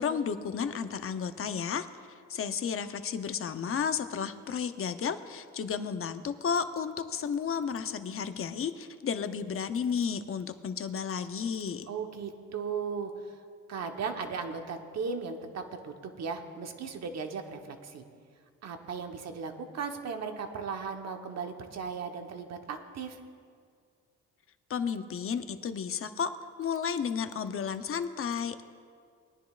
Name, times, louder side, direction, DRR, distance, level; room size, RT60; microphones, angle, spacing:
voice 1, 0.0-1.9 2.3-11.9 24.7-28.6, left 6 dB, 45° left, 10 dB, 0.7 m, -32 dB
voice 2, 11.9-13.4 13.7-18.0 18.6-23.2, right 5 dB, 60° right, 5 dB, 1.2 m, -37 dB
21.0 x 10.0 x 2.5 m, 2.1 s
cardioid pair, 90°, 30 cm